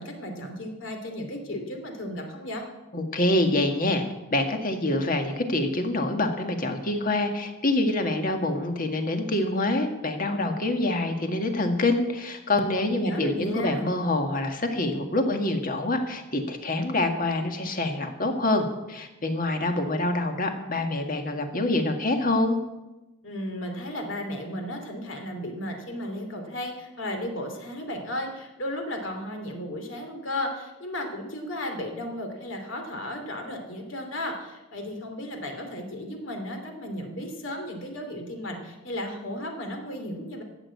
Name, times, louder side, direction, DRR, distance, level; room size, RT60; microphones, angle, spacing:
voice 1, 0.0-2.6 12.9-13.9 23.2-40.4, left 1 dB, 65° left, 4 dB, 2.8 m, -34 dB
voice 2, 2.9-4.0 4.3-22.6, left 2 dB, 40° left, 5 dB, 1.7 m, -26 dB
14.0 x 8.3 x 8.5 m, 1.0 s
head